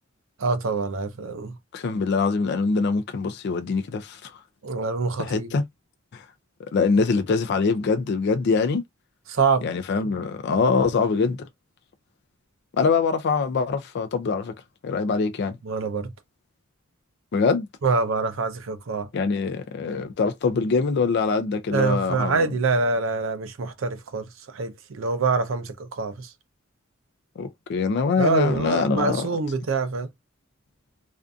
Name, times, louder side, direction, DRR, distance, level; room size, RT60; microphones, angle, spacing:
voice 1, 0.4-1.6 4.6-5.5 9.3-9.7 15.6-16.1 17.8-19.1 21.7-26.3 28.2-30.1, right 4 dB, 70° right, 0.5 m, -25 dB
voice 2, 1.7-4.3 5.2-5.6 6.1-6.2 6.7-8.8 9.6-11.4 12.8-14.5 14.8-15.6 17.3-17.7 19.1-22.5 27.4-29.3, left 4 dB, 55° left, 0.4 m, -23 dB
2.5 x 2.4 x 2.3 m
head